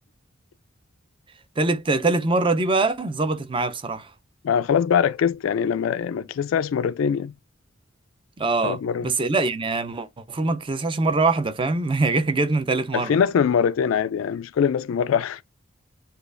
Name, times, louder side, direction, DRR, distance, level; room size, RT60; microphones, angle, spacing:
voice 1, 1.6-4.1 8.4-13.2, right 3 dB, 25° right, 0.5 m, -23 dB
voice 2, 4.4-7.3 8.6-9.1 12.9-15.4, left 7 dB, 75° left, 0.3 m, -22 dB
6.8 x 2.4 x 2.4 m
head